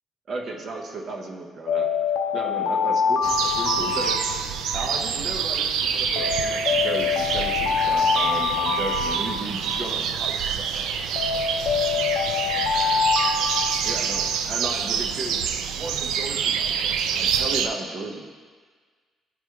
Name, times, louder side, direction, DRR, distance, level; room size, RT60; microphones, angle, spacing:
voice 1, 0.3-1.9 2.3-4.2 4.7-11.1 13.8-15.5 15.8-18.3, right 3 dB, 40° right, 1 dB, 0.7 m, -34 dB
Alarm, 1.7-5.0 6.2-10.0 11.2-14.4, left 6 dB, 80° left, 0.5 m, -25 dB
sound 1, 3.2-17.7, right 7 dB, 85° right, 0.3 m, -26 dB
11.0 x 4.5 x 2.3 m, 1.5 s
cardioid pair, 160°, 0 cm